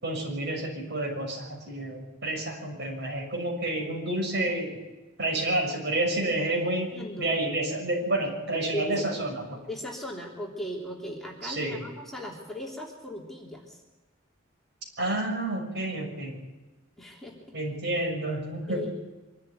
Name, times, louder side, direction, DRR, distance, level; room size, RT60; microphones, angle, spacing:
voice 1, 0.0-4.8 5.2-6.9 7.2-9.6 11.4-11.8 15.0-16.4 17.5-18.9, right 1 dB, 60° right, 1 dB, 6.6 m, -29 dB
voice 2, 6.9-7.3 8.7-9.1 9.7-13.8 17.0-17.4 18.7-18.9, left 1 dB, ahead, -2 dB, 3.3 m, -37 dB
24.5 x 13.0 x 9.5 m, 1.2 s
head